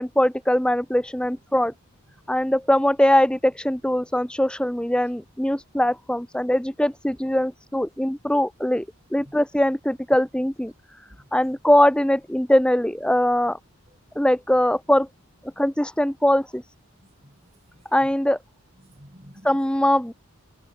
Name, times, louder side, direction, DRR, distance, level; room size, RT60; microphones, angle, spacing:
voice 1, 0.0-1.7 2.3-8.8 9.1-10.7 11.3-13.6 14.2-15.1 15.6-16.6 17.9-18.4 19.4-20.1, left 1 dB, 5° left, 0.8 m, -21 dB
voice 2, 17.0-17.4 17.7-18.1 18.7-19.7, equal, 30° right, 6.9 m, -51 dB
open air
head